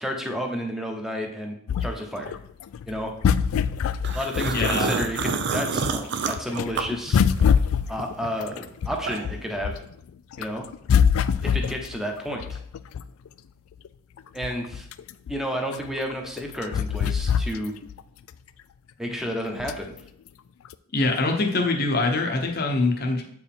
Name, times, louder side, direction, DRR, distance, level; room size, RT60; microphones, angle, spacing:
voice 1, 0.0-2.4 2.9-3.1 4.1-7.2 7.9-9.8 10.4-10.7 11.4-12.6 14.3-14.9 15.3-17.8 19.0-20.0, equal, ahead, 2 dB, 0.9 m, -31 dB
sound 1, 1.7-5.4 5.8-9.9 10.3-13.3 13.8-13.9 14.2-18.0 18.3-18.4 19.6-20.0 20.7-20.8, left 7 dB, 70° left, 0.3 m, -24 dB
sound 2, 4.0-7.6 8.0-9.5, right 5 dB, 55° right, 0.5 m, -28 dB
voice 2, 4.5-4.9 20.9-23.2, left 3 dB, 45° left, 2 dB, 0.9 m, -23 dB
8.0 x 4.7 x 3.6 m, 0.68 s
head